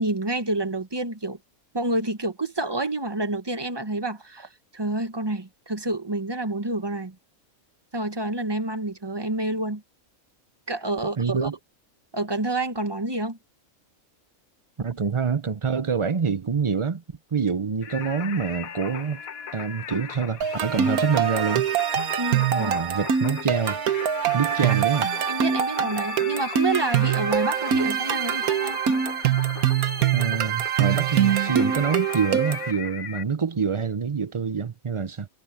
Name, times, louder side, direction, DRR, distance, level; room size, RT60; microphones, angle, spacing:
voice 1, 0.0-1.4 1.7-7.1 7.9-9.8 10.7-11.5 12.1-13.4 22.2-22.7 25.3-28.8, right 2 dB, 20° right, 1.1 m, -28 dB
voice 2, 11.2-11.5 14.8-17.0 17.3-19.2 19.5-21.7 22.5-23.8 24.3-25.1 30.1-35.3, right 5 dB, 45° right, 0.4 m, -26 dB
Singing, 17.8-33.2, left 8 dB, 75° left, 1.4 m, -38 dB
sound 1, 20.4-32.7, right 9 dB, 90° right, 1.5 m, -24 dB
omnidirectional pair, 1.5 m